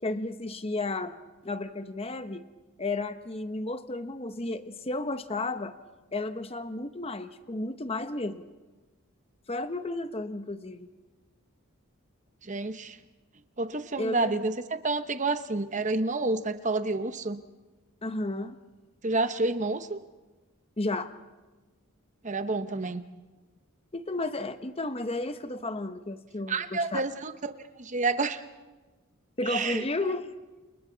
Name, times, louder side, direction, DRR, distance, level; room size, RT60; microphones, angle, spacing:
voice 1, 0.0-1.2 1.4-2.4 2.8-5.7 6.1-8.5 9.5-10.9 14.0-14.4 18.0-18.6 20.8-21.1 23.9-27.0 29.4-30.3, left 2 dB, 25° left, 10 dB, 0.9 m, -33 dB
voice 2, 12.4-13.0 13.6-17.4 19.0-20.0 22.2-23.1 26.5-28.4 29.4-29.8, right 3 dB, 35° right, 10 dB, 1.0 m, -29 dB
29.5 x 28.5 x 4.0 m, 1.2 s
head